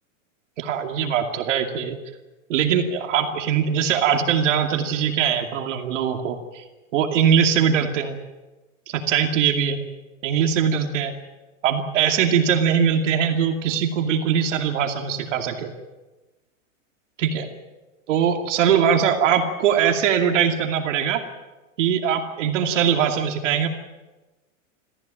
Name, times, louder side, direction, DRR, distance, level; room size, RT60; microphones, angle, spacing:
voice 1, 0.6-2.0 2.5-6.6 6.9-8.2 8.9-9.8 10.2-11.1 11.6-15.7 17.2-17.5 18.1-21.2 21.8-23.7, right 8 dB, 65° right, 4 dB, 2.6 m, -21 dB
24.5 x 15.0 x 9.0 m, 1.1 s
supercardioid pair, 155°, 39 cm